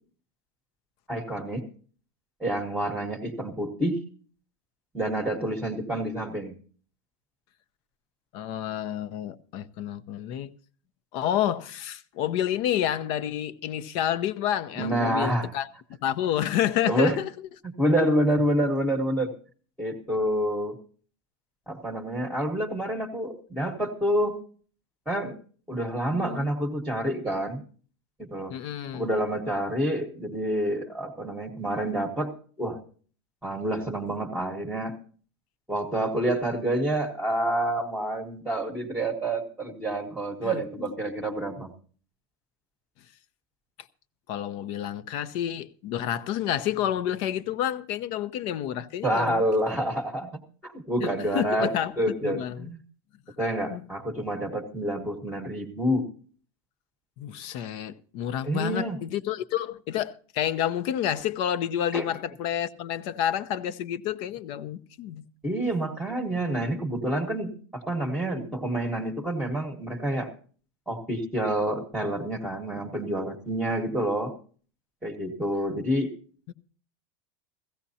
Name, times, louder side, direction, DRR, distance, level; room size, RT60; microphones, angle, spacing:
voice 1, 1.1-1.6 2.4-4.0 4.9-6.5 14.8-15.5 16.8-17.2 17.6-19.3 19.8-20.8 21.7-24.3 25.1-25.4 25.7-27.6 28.2-28.6 28.9-32.3 32.6-32.8 33.4-35.0 35.7-41.7 49.0-52.8 53.4-56.1 58.4-59.0 61.9-62.1 65.4-70.3 70.9-74.3 75.0-76.1, right 1 dB, 5° right, 1.2 m, -28 dB
voice 2, 8.3-10.5 11.1-15.7 16.0-17.3 26.1-26.5 28.5-29.1 40.4-40.9 44.3-49.5 51.0-51.9 52.2-52.7 53.7-53.8 57.2-65.2 76.5-76.6, left 10 dB, 40° left, 0.7 m, -29 dB
17.0 x 15.0 x 2.8 m
supercardioid pair, 180°, 13 cm